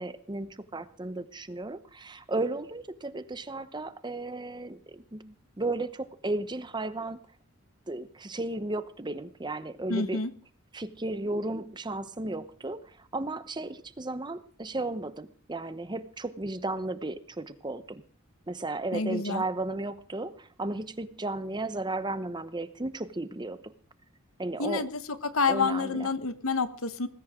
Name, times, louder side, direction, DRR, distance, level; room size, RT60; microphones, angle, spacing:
voice 1, 0.0-7.2 7.9-10.2 10.7-18.0 18.5-23.7 24.4-24.9 25.5-26.1, right 2 dB, 20° right, 13 dB, 0.9 m, -34 dB
voice 2, 9.9-10.3 18.9-19.4 24.6-24.9 25.2-27.1, left 4 dB, 75° left, 12 dB, 1.2 m, -28 dB
19.0 x 16.0 x 3.7 m, 0.43 s
head